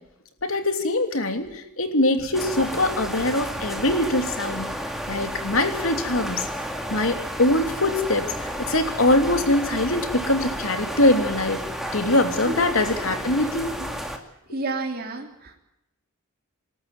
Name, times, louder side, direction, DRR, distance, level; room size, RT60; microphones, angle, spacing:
voice 1, 0.4-4.7 5.1-6.5 6.9-11.6 11.9-13.7 14.5-14.6, left 1 dB, 65° left, 6 dB, 3.2 m, -23 dB
sound 1, 2.3-14.2, equal, ahead, 2.4 m, -32 dB
voice 2, 14.5-15.6, right 2 dB, 45° right, 2 dB, 3.4 m, -30 dB
26.5 x 13.5 x 9.4 m, 0.85 s
head